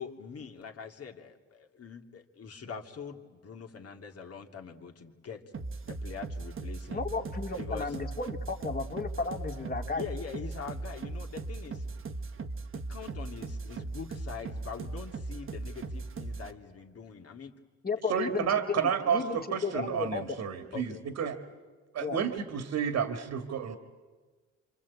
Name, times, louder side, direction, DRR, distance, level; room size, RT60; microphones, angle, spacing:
voice 1, 0.0-5.4 5.9-7.1 7.5-8.0 10.0-11.9 12.3-12.5 12.7-17.5 20.7-21.0, left 6 dB, 50° left, 3 dB, 2.8 m, -43 dB
sound 1, 5.5-16.5, right 3 dB, 45° right, 1.5 m, -38 dB
voice 2, 6.9-10.0 17.8-20.2 22.0-22.2, left 4 dB, 30° left, 4 dB, 2.6 m, -34 dB
voice 3, 18.1-21.4 21.9-23.8, right 7 dB, 65° right, 7 dB, 2.2 m, -31 dB
27.5 x 25.5 x 8.5 m, 1.4 s
cardioid pair, 90°, 30 cm